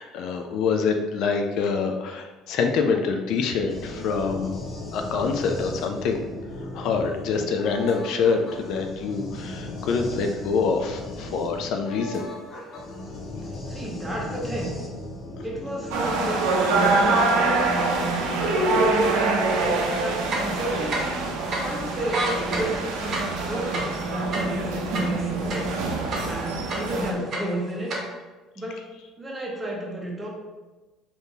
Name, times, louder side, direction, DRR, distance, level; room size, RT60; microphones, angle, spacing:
voice 1, 0.0-4.5 4.9-6.2 6.7-12.3 21.5-21.8 22.1-22.2, left 5 dB, 70° left, 4 dB, 0.3 m, -26 dB
sound 1, 3.7-16.0, left 2 dB, 50° left, 0.7 m, -36 dB
voice 2, 13.7-14.8 15.4-19.4 20.0-21.3 21.6-25.7 26.3-27.9 28.6-28.9 29.2-30.3, right 1 dB, 15° right, -2 dB, 0.9 m, -32 dB
sound 2, 15.9-27.1, right 3 dB, 85° right, 0.5 m, -25 dB
sound 3, 19.7-19.8 20.2-21.2 21.5-21.6 22.0-25.8 26.1-27.0 27.3-28.0, right 2 dB, 45° right, 0.9 m, -29 dB
3.6 x 2.6 x 2.7 m, 1.2 s
cardioid pair, 100°, 0 cm